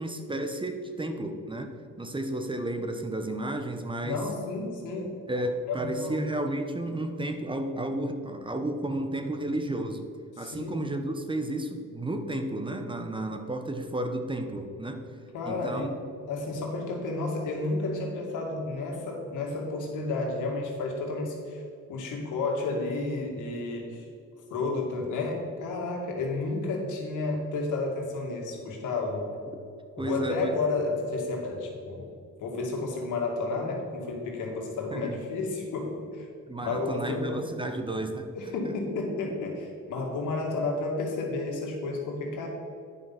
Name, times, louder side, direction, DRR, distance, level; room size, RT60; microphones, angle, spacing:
voice 1, 0.0-1.7 2.0-4.2 5.3-10.0 10.4-15.1 15.5-15.9 30.0-30.5 34.9-35.1 36.5-38.3, right 1 dB, 15° right, 6 dB, 1.0 m, -32 dB
voice 2, 4.0-5.1 5.7-6.3 10.4-10.8 15.3-15.9 16.3-21.6 21.9-24.1 24.5-29.3 30.0-32.1 32.4-36.3 36.6-37.5 38.3-42.5, left 3 dB, 85° left, 0 dB, 2.2 m, -31 dB
9.8 x 5.6 x 6.0 m, 2.5 s
cardioid pair, 90°, 30 cm